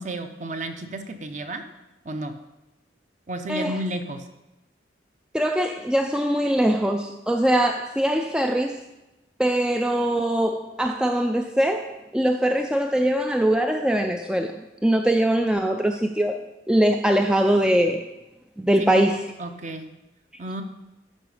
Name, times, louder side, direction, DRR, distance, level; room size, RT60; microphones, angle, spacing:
voice 1, 0.0-1.6 2.0-2.3 3.3-4.3 18.8-19.0 19.4-19.8 20.4-20.6, right 1 dB, 40° right, 7 dB, 0.8 m, -32 dB
voice 2, 5.3-8.8 9.4-14.6 14.8-16.4 16.7-18.0 18.6-19.2, right 1 dB, 5° right, 5 dB, 0.3 m, -22 dB
12.0 x 4.8 x 5.0 m, 0.99 s
head